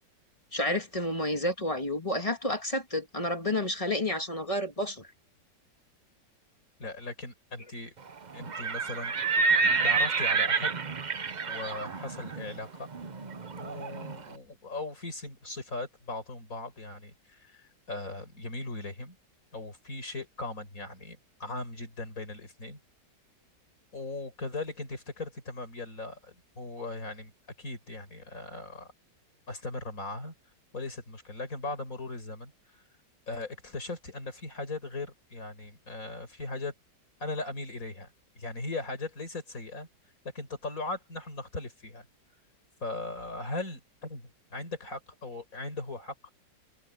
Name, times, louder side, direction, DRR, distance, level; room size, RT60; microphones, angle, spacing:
voice 1, 0.5-5.1, left 1 dB, 20° left, 1.8 m, -30 dB
voice 2, 6.8-7.9 8.3-9.4 9.8-10.7 11.5-12.9 13.6-19.2 19.5-22.8 23.9-27.3 27.6-28.9 29.5-30.3 30.7-32.5 33.3-36.7 37.2-38.1 38.4-39.9 40.3-42.1 42.8-44.2 44.5-46.1, left 2 dB, 45° left, 5.8 m, -38 dB
Livestock farm animals working animals, 8.4-14.2, right 4 dB, 40° right, 0.6 m, -29 dB
open air
omnidirectional pair, 1.9 m